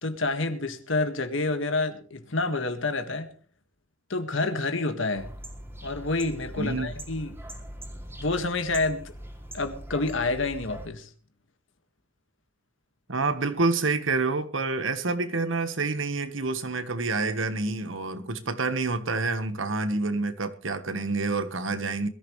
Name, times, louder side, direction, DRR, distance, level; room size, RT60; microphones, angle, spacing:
voice 1, 0.0-3.3 4.1-5.3 5.8-7.3 8.2-9.1 9.5-11.1, left 3 dB, 75° left, 8 dB, 1.8 m, -28 dB
sound 1, 5.1-10.9, right 1 dB, 10° right, 2.8 m, -42 dB
voice 2, 6.6-6.9 13.1-22.1, right 3 dB, 75° right, 11 dB, 1.4 m, -28 dB
21.5 x 14.0 x 3.2 m, 0.42 s
head